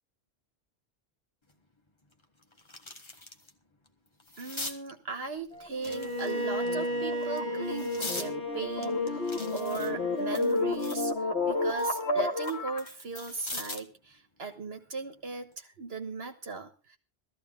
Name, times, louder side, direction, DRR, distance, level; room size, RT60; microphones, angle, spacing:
sound 1, 1.5-1.6 2.1-3.5 3.9-4.8 5.7-6.6 7.2-8.3 8.8-11.1 11.5-13.9 15.3-15.5, left 2 dB, 25° left, 1.4 m, -42 dB
voice 1, 4.4-11.1 11.5-17.0, right 4 dB, 65° right, 6 dB, 1.5 m, -38 dB
sound 2, 5.6-12.9, left 2 dB, 75° left, 2.5 m, -32 dB
Bowed string instrument, 5.9-10.9, equal, 50° left, 1.8 m, -35 dB
17.0 x 14.0 x 3.8 m, 0.34 s
omnidirectional pair, 1.1 m